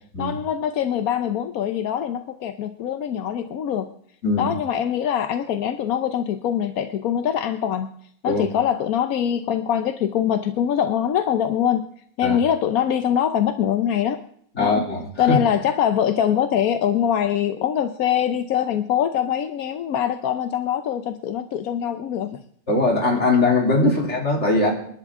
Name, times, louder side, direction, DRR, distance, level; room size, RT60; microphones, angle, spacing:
voice 1, 0.2-3.9 4.4-7.9 8.2-11.9 12.2-14.2 14.6-14.8 15.2-22.4 23.8-23.9, left 9 dB, 85° left, 9 dB, 1.2 m, -23 dB
voice 2, 14.6-15.4 22.7-24.7, left 2 dB, 50° left, 0 dB, 3.4 m, -20 dB
28.0 x 11.5 x 3.7 m, 0.65 s
omnidirectional pair, 1.5 m